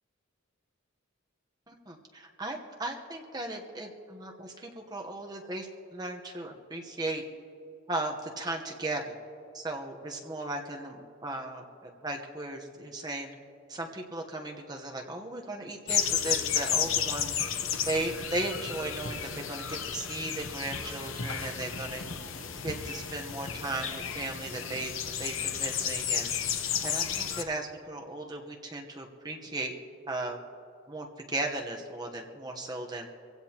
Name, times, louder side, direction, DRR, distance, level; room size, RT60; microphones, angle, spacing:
voice 1, 1.7-7.2 7.9-9.2 9.5-13.3 13.7-17.4 17.8-22.0 22.6-24.9 25.2-26.3 26.8-29.7 30.1-30.4 30.9-33.1, right 2 dB, 20° right, 1 dB, 1.0 m, -36 dB
sound 1, 15.9-27.4, left 8 dB, 70° left, 0.9 m, -32 dB
23.5 x 16.0 x 2.9 m, 2.7 s
head